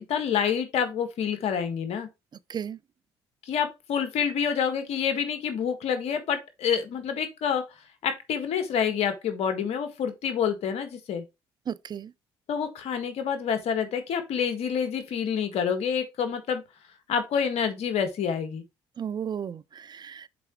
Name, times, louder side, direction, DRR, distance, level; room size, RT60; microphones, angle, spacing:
voice 1, 0.0-2.1 3.4-7.6 8.0-11.2 12.5-16.6 17.1-18.6, left 7 dB, 65° left, 1.7 m, -27 dB
voice 2, 11.7-12.1 19.0-20.3, right 8 dB, 40° right, 0.4 m, -34 dB
5.9 x 4.8 x 4.4 m
supercardioid pair, 60°, 11 cm